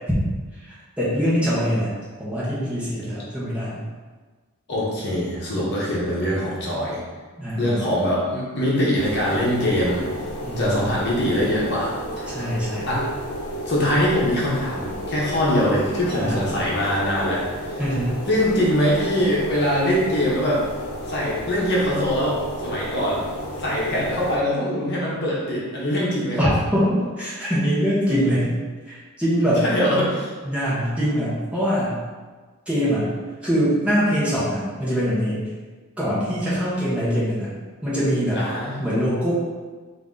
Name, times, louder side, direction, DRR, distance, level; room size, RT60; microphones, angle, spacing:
voice 1, 1.0-1.9 2.2-3.8 7.4-7.8 10.4-10.9 12.3-13.0 16.1-16.5 17.8-18.1 26.4-28.6 28.9-29.6 30.4-32.0 32.7-33.1 33.4-35.5 36.0-37.5 37.8-38.4 38.8-39.3, equal, 5° right, -10 dB, 1.1 m, -23 dB
voice 2, 4.7-7.0 7.6-10.0 10.6-12.3 12.9-13.1 13.7-17.4 17.7-17.8 18.3-20.7 21.1-23.2 23.6-26.5 29.6-30.3 38.3-38.8, equal, 50° left, -6 dB, 1.0 m, -23 dB
sound 1, 8.9-24.4, equal, 75° left, 0.8 m, -32 dB
3.8 x 2.7 x 3.7 m, 1.4 s
head